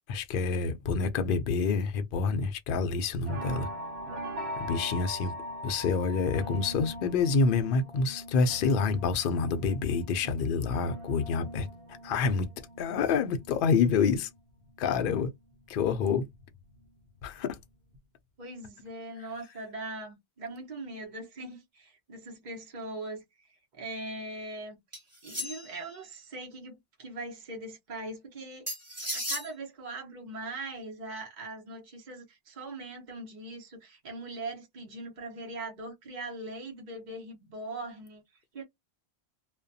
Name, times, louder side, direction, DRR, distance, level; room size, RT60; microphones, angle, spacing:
voice 1, 0.1-3.7 4.7-5.3 5.6-11.7 12.0-12.5 12.8-14.3 14.8-15.3 15.7-16.3 17.2-17.6, left 5 dB, 60° left, 0.7 m, -27 dB
sound 1, 2.8-15.0 15.3-16.9 17.3-17.6 17.9-18.0, equal, 70° right, 1.1 m, -42 dB
voice 2, 18.4-23.5 23.7-28.7 29.1-38.2 38.5-38.6, right 2 dB, 45° right, 1.0 m, -41 dB
sound 2, 24.9-25.8 28.7-29.5, left 1 dB, 15° right, 1.2 m, -35 dB
2.5 x 2.2 x 2.6 m
omnidirectional pair, 1.1 m